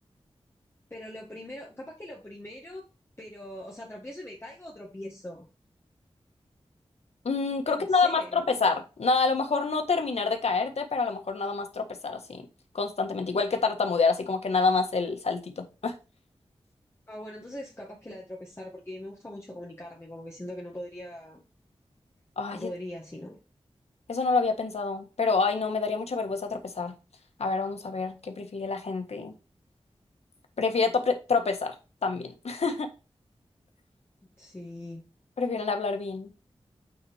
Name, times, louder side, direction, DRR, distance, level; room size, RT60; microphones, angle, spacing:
voice 1, 0.9-2.8 3.2-5.4 7.7-8.4 17.1-21.4 22.5-23.4 34.4-35.0, left 1 dB, 25° left, 1.9 m, -41 dB
voice 2, 7.2-12.4 12.7-15.9 22.4-22.7 24.1-26.9 27.4-29.3 30.6-31.7 32.0-32.9 35.4-36.3, left 4 dB, 80° left, 1.5 m, -27 dB
8.6 x 4.2 x 5.0 m
wide cardioid pair, 65°, 11 cm